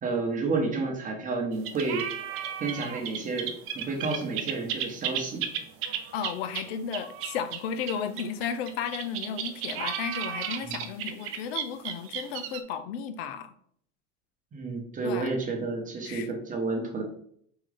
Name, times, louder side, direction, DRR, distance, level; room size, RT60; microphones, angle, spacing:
voice 1, 0.0-2.1 2.6-3.5 3.7-5.4 10.6-10.7 14.5-17.0, right 3 dB, 25° right, 2 dB, 1.0 m, -30 dB
sound 1, 1.5-12.6, right 9 dB, 45° right, 0.5 m, -34 dB
voice 2, 6.1-13.5 15.0-15.4 16.1-16.3, left 7 dB, 70° left, 11 dB, 0.5 m, -34 dB
3.8 x 2.5 x 3.3 m, 0.64 s
supercardioid pair, 105°, 32 cm